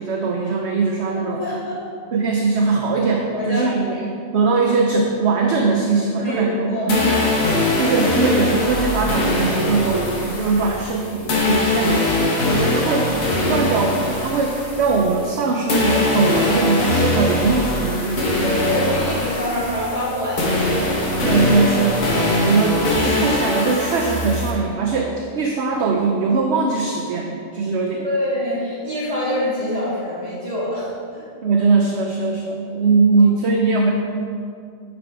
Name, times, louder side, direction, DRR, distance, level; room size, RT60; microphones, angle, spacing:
voice 1, 0.0-1.4 2.1-7.2 7.8-13.1 13.5-18.3 21.2-28.1 31.4-33.9, right 4 dB, 60° right, 2 dB, 0.9 m, -20 dB
voice 2, 1.4-1.8 3.3-4.0 6.2-7.0 18.4-21.2 28.0-31.3 33.5-33.6, left 1 dB, 25° right, -9 dB, 2.2 m, -25 dB
sound 1, 6.9-15.4 15.7-24.5, left 2 dB, 85° left, 1.8 m, -21 dB
9.4 x 5.2 x 4.7 m, 2.3 s
omnidirectional pair, 1.4 m